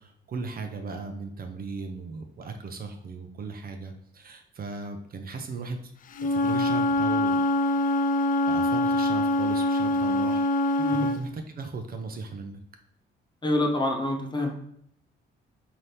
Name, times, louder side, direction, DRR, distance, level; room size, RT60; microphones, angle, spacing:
voice 1, 0.0-5.8 6.2-7.4 7.7-7.8 8.5-12.6, right 4 dB, 50° right, 5 dB, 0.6 m, -37 dB
Wind instrument woodwind instrument, 6.1-11.2, left 1 dB, 45° left, 0.4 m, -24 dB
voice 2, 13.4-14.5, left 1 dB, 20° left, 1 dB, 0.8 m, -26 dB
4.0 x 2.8 x 3.3 m, 0.69 s
cardioid pair, 90°, 20 cm